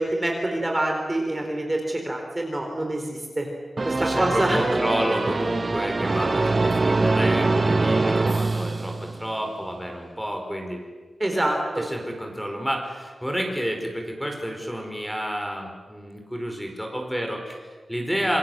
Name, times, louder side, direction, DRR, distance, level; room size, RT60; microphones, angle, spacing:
voice 1, 0.0-3.5 3.8-4.8 11.2-11.9, right 1 dB, 20° right, 2 dB, 4.4 m, -26 dB
sound 1, 3.8-9.4, right 3 dB, 35° right, 0.8 m, -23 dB
voice 2, 4.0-10.8 11.8-18.4, equal, ahead, 3 dB, 5.0 m, -30 dB
27.5 x 25.0 x 8.0 m, 1.4 s
wide cardioid pair, 125°, 0 cm